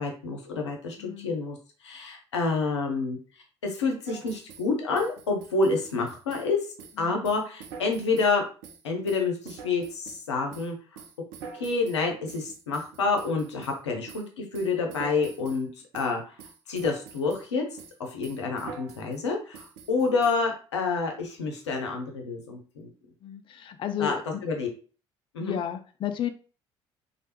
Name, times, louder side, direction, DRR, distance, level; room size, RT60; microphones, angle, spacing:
voice 1, 0.0-1.6 1.8-3.2 3.6-6.6 7.0-8.5 8.8-11.0 11.5-16.4 16.7-17.6 18.0-22.9 24.0-24.7 25.3-25.6, left 4 dB, 80° left, 2 dB, 0.6 m, -28 dB
voice 2, 1.0-1.3 7.0-7.2 23.2-24.4 25.4-26.3, left 9 dB, 35° left, 8 dB, 0.4 m, -33 dB
sound 1, 4.1-4.7 4.9-6.5 6.8-7.0 7.2-8.4 8.6-10.3 10.5-13.8 14.1-14.3 14.5-15.6 15.9-16.1 16.4-17.5 17.8-18.0 18.2-19.2 19.5-20.3, right 6 dB, 65° right, 0.5 m, -45 dB
3.2 x 2.3 x 3.0 m, 0.38 s
figure-of-eight pair, 50°, 15 cm